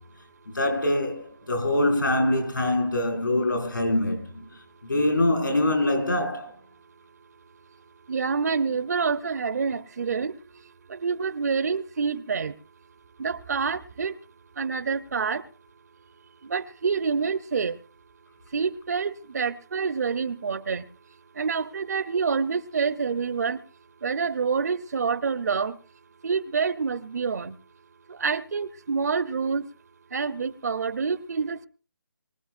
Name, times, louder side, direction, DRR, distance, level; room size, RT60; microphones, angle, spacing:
voice 1, 0.5-4.4 4.8-6.5, left 1 dB, 85° left, 5.5 m, -24 dB
voice 2, 8.1-10.4 10.9-12.6 13.2-14.1 14.6-15.4 16.4-17.8 18.5-20.9 21.4-23.6 24.0-25.8 26.2-27.6 28.1-29.7 30.1-31.7, right 5 dB, 55° right, 0.8 m, -27 dB
23.5 x 16.5 x 2.5 m
figure-of-eight pair, 160°, 11 cm